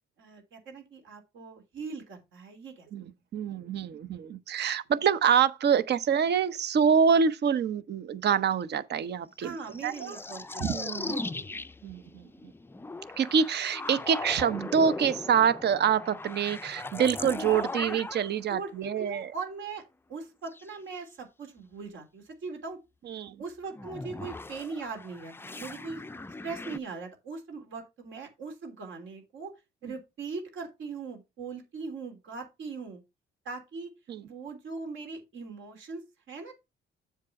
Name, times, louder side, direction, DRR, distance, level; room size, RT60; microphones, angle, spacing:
voice 1, 0.2-2.9 9.4-10.7 11.0-11.5 18.5-19.8 20.1-22.8 23.4-26.0 26.4-29.5 29.8-33.0 33.4-33.9 34.2-36.0 36.3-36.5, right 4 dB, 75° right, 3.1 m, -40 dB
voice 2, 3.3-9.6 9.8-10.2 10.6-11.1 11.8-12.2 13.2-19.3 23.1-23.4 29.8-29.9 34.1-34.2, right 7 dB, 60° right, 0.8 m, -26 dB
sound 1, 9.5-18.4 20.5-20.8 23.7-26.8, left 3 dB, 10° left, 0.4 m, -38 dB
7.5 x 4.8 x 5.7 m
cardioid pair, 90°, 20 cm